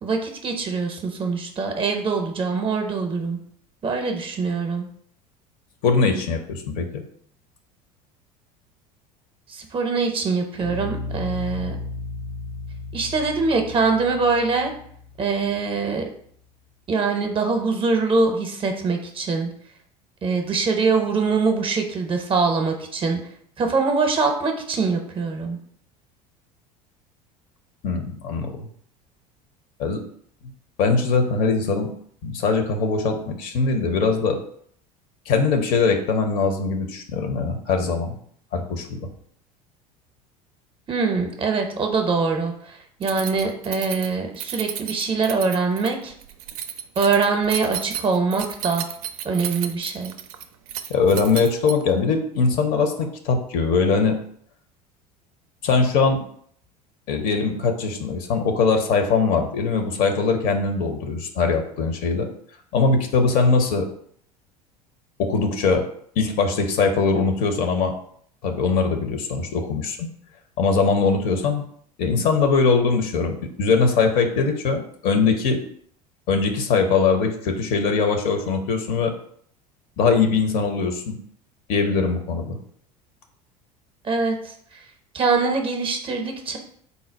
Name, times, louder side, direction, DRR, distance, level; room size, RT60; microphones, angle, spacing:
voice 1, 0.0-3.4 3.8-4.9 9.5-11.8 12.9-14.7 15.2-16.0 16.9-19.5 20.2-23.2 23.6-25.6 40.9-42.5 43.0-46.1 47.0-48.8 49.2-50.1 84.0-84.3 85.1-86.6, right 4 dB, 25° right, 4 dB, 0.7 m, -23 dB
voice 2, 5.8-7.0 27.8-28.6 29.8-30.0 30.8-31.9 32.2-34.4 35.3-38.1 38.5-39.1 50.9-54.2 55.6-56.2 57.1-62.3 62.7-63.9 65.2-65.8 66.2-67.9 68.4-70.1 70.6-71.6 72.0-75.6 76.3-79.1 80.0-81.2 81.7-82.6, left 4 dB, 45° left, 5 dB, 0.7 m, -21 dB
sound 1, 10.6-15.8, left 3 dB, 85° left, 0.7 m, -34 dB
Keys jangling, 43.0-52.0, right 10 dB, 60° right, 0.4 m, -33 dB
4.0 x 2.2 x 4.4 m, 0.62 s
figure-of-eight pair, 70°, 20 cm